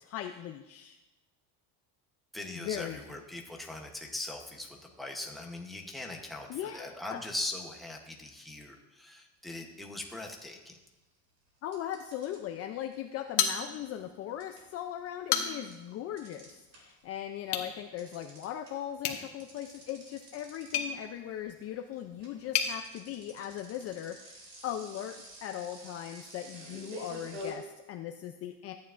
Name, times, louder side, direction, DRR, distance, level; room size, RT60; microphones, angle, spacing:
voice 1, 0.1-1.0 2.6-3.2 6.5-7.2 11.6-28.7, left 11 dB, 40° left, 5 dB, 0.4 m, -39 dB
voice 2, 2.3-10.8, left 2 dB, ahead, 0 dB, 0.8 m, -40 dB
sound 1, 9.7-9.8 10.1-11.0 11.7-17.1 17.4-27.5, equal, 55° right, 2.9 m, -48 dB
sound 2, 13.4-14.1 14.5-14.6 15.1-15.8 17.4-17.7 19.0-22.7, left 8 dB, 70° left, 1.3 m, -34 dB
14.0 x 9.3 x 2.5 m, 1.1 s
cardioid pair, 155°, 40 cm